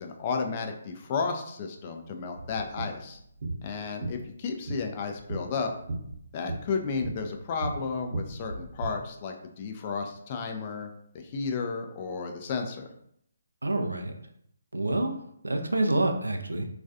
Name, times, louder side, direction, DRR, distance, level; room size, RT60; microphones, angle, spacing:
voice 1, 0.0-3.2 3.6-5.7 6.3-10.9 11.1-12.9, left 5 dB, 35° left, 4 dB, 0.3 m, -33 dB
sound 1, 2.3-8.9, right 2 dB, 60° right, 0.8 m, -37 dB
voice 2, 13.6-14.1 14.7-15.2 15.4-16.7, right 2 dB, 85° right, 4 dB, 0.3 m, -27 dB
2.4 x 2.2 x 2.5 m, 0.71 s
figure-of-eight pair, 145°, 0 cm